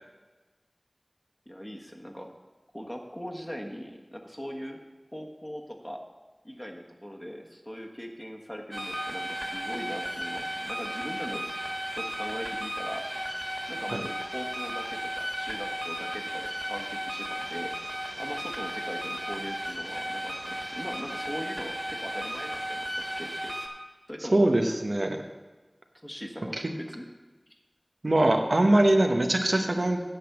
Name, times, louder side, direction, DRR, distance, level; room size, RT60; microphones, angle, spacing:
voice 1, 1.5-2.3 2.7-4.8 5.1-6.0 6.4-11.4 11.9-13.4 13.7-17.7 18.2-23.5 24.1-24.5 26.0-27.1, equal, 15° left, 2 dB, 1.3 m, -40 dB
sound 1, 8.7-23.7, equal, 20° right, 1.7 m, -35 dB
voice 2, 24.3-25.2 26.5-26.6 28.0-30.0, right 1 dB, 80° right, 4 dB, 1.0 m, -22 dB
9.3 x 6.1 x 7.2 m, 1.2 s
wide cardioid pair, 45°, 0 cm